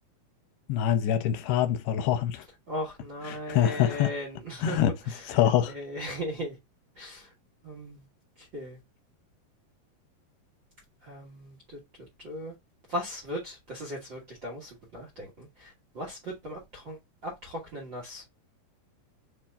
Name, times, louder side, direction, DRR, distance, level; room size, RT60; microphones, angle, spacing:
voice 1, 0.7-2.4 3.3-4.1 4.6-4.9 5.3-5.7, left 10 dB, 85° left, 2.6 m, -25 dB
voice 2, 2.7-5.4 5.7-6.6 6.9-7.3 7.6-8.0 8.4-8.8 11.0-11.8 12.2-12.5 12.9-17.0 17.2-18.2, equal, 55° right, 1.3 m, -38 dB
7.0 x 3.1 x 2.3 m
omnidirectional pair, 4.6 m